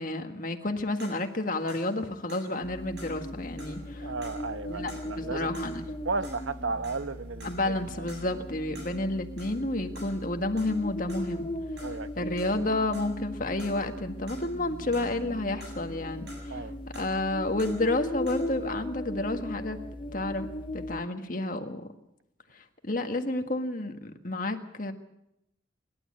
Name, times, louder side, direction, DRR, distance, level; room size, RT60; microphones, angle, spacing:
voice 1, 0.0-4.1 4.7-5.9 7.4-11.5 12.2-16.6 16.9-19.8 20.1-20.5 20.7-21.9 22.5-24.9, left 2 dB, 45° left, 1.7 m, -30 dB
sound 1, 1.0-6.0 6.2-13.3 13.6-15.3 15.6-18.6, right 1 dB, 60° right, 6.6 m, -51 dB
sound 2, 2.6-21.0, left 1 dB, 25° left, 0.9 m, -38 dB
voice 2, 4.0-5.6 6.0-8.1 11.8-12.3 16.5-16.8, right 3 dB, 80° right, 1.1 m, -34 dB
27.5 x 12.0 x 8.7 m
head